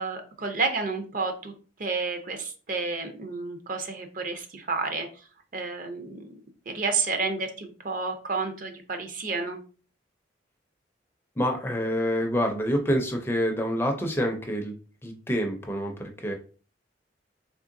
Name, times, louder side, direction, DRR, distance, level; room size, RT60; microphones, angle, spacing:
voice 1, 0.0-1.5 1.8-5.1 5.5-6.2 6.7-9.6, right 4 dB, 45° right, 6 dB, 0.5 m, -30 dB
voice 2, 11.4-14.7 15.0-16.3, equal, 10° left, 3 dB, 0.4 m, -27 dB
3.6 x 3.1 x 2.5 m, 0.38 s
head